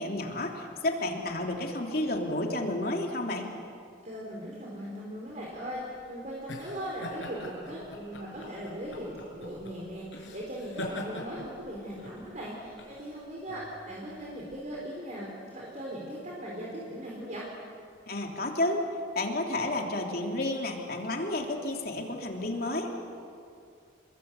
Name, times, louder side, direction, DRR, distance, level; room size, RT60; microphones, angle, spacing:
voice 1, 0.0-3.5 18.1-18.8 19.1-22.9, left 1 dB, 50° left, 1 dB, 3.2 m, -31 dB
voice 2, 4.0-17.5, equal, 40° right, -3 dB, 4.4 m, -39 dB
sound 1, 5.5-14.6, left 1 dB, 75° left, 5.6 m, -43 dB
29.0 x 22.5 x 8.4 m, 2.4 s
head